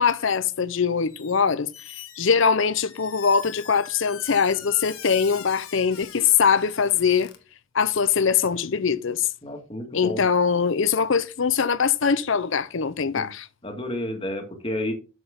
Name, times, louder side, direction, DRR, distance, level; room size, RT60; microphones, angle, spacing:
voice 1, 0.0-1.7 2.2-7.3 7.7-9.3 9.9-13.5, left 6 dB, 60° left, 0.6 m, -22 dB
Squeak, 1.1-1.4 1.7-7.4, left 10 dB, 80° left, 1.3 m, -43 dB
voice 2, 9.4-10.2 13.1-13.3 13.6-14.9, left 1 dB, 25° left, 1.8 m, -31 dB
8.0 x 7.0 x 3.6 m
head